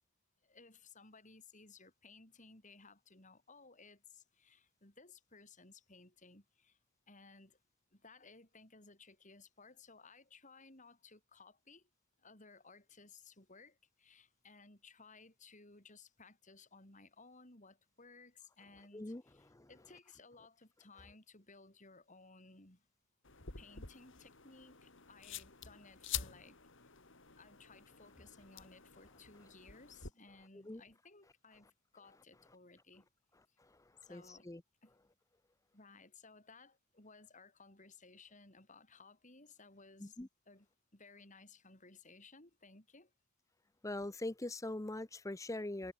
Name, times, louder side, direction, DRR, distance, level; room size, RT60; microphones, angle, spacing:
voice 1, 0.4-6.8 7.1-7.6 7.9-11.8 12.2-22.8 23.5-26.6 27.4-33.1 34.0-34.5 34.8-35.0 35.7-40.2 40.5-40.7 40.9-43.1, left 4 dB, 35° left, 5.1 m, -59 dB
voice 2, 18.9-19.7 30.7-30.8 33.6-33.8 34.1-34.6 40.0-40.3 43.8-45.9, left 1 dB, 15° left, 0.7 m, -42 dB
sound 1, 23.2-30.1, left 9 dB, 60° left, 3.1 m, -48 dB
head